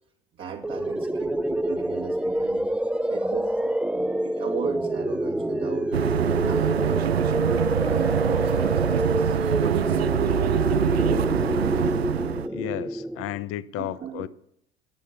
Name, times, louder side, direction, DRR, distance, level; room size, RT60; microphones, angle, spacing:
voice 1, 0.4-2.6 3.0-3.8 4.2-6.0 6.4-7.5 7.8-10.2 13.8-14.3, right 6 dB, 40° right, 2.1 m, -36 dB
sound 1, 0.6-13.4, right 1 dB, 5° right, 0.7 m, -27 dB
sound 2, 5.9-12.5, right 10 dB, 80° right, 0.6 m, -24 dB
voice 2, 12.5-14.3, left 14 dB, 45° left, 0.9 m, -33 dB
20.5 x 8.3 x 6.7 m
figure-of-eight pair, 70°, 31 cm